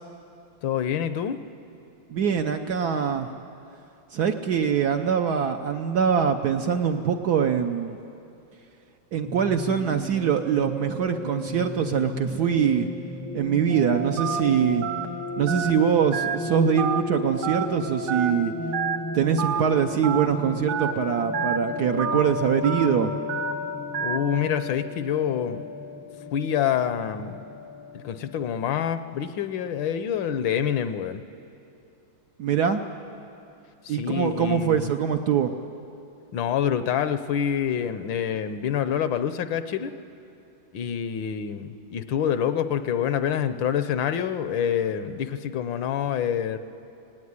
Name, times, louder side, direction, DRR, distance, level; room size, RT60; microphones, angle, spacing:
voice 1, 0.6-1.4 24.0-25.6 26.3-27.4 27.9-31.2 33.8-34.9 36.3-39.9 40.7-46.6, left 8 dB, 70° left, 11 dB, 1.4 m, -26 dB
voice 2, 2.1-3.3 4.1-8.0 9.1-12.9 13.3-14.9 15.4-18.5 19.1-23.1 32.4-32.8 33.9-35.5, right 7 dB, 65° right, 6 dB, 1.0 m, -23 dB
sound 1, 9.2-28.8, left 3 dB, 15° left, 0.7 m, -34 dB
Telephone, 14.2-14.4 14.8-15.1 15.5-15.7 16.1-16.4 16.8-17.0 17.4-17.7 18.1-18.3 18.7-19.0 19.4-19.6 20.0-20.3 20.7-20.9 21.3-21.6 22.0-22.2 22.6-22.9 23.3-23.5 23.9-24.2, right 8 dB, 90° right, 2.1 m, -28 dB
18.5 x 17.0 x 9.5 m, 2.7 s
omnidirectional pair, 2.3 m